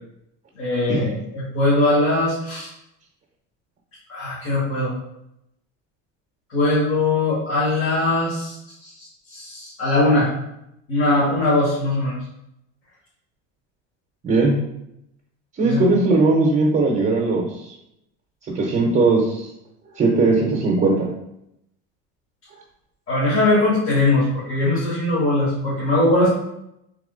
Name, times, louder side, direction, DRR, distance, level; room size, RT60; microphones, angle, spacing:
voice 1, 0.6-2.7 4.1-4.9 6.5-8.6 8.8-8.9 9.3-10.3 10.9-12.1 15.6-15.8 23.1-26.3, left 2 dB, 50° left, -7 dB, 1.5 m, -20 dB
voice 2, 14.2-14.6 15.6-17.7 18.5-19.5 19.9-21.1, right 3 dB, 30° right, -2 dB, 0.7 m, -19 dB
3.6 x 2.9 x 3.8 m, 0.82 s
cardioid pair, 120°, 29 cm